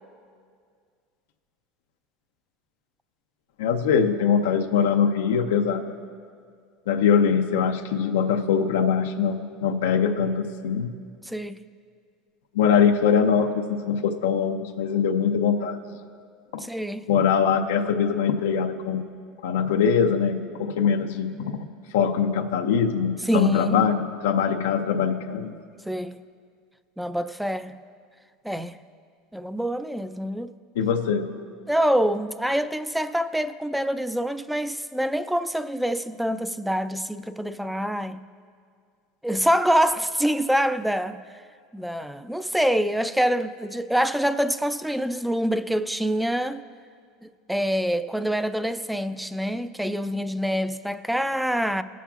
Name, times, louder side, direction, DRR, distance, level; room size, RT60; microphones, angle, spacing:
voice 1, 3.6-5.9 6.9-10.9 12.5-15.8 16.5-16.6 17.1-19.0 19.4-21.7 21.9-25.5 30.8-31.3, left 7 dB, 90° left, 0.5 m, -22 dB
voice 2, 11.2-11.6 16.6-17.1 19.6-19.7 23.3-23.9 25.9-26.1 27.0-27.8 28.4-28.8 29.3-30.5 31.7-38.2 39.2-41.2 41.7-46.6 47.2-51.8, equal, ahead, 0.3 m, -25 dB
20.0 x 7.3 x 2.4 m
supercardioid pair, 110°, 0 cm